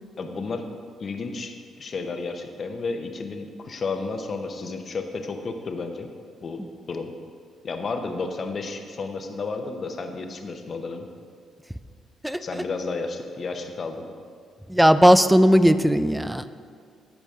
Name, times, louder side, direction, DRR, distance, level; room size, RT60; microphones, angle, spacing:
voice 1, 0.2-0.7 1.0-6.1 6.4-6.6 6.9-7.1 7.6-11.1 12.4-14.1, left 4 dB, 45° left, 5 dB, 0.8 m, -32 dB
voice 2, 14.7-16.4, equal, 5° right, 12 dB, 0.3 m, -17 dB
13.5 x 5.1 x 3.7 m, 2.1 s
cardioid pair, 90°, 0 cm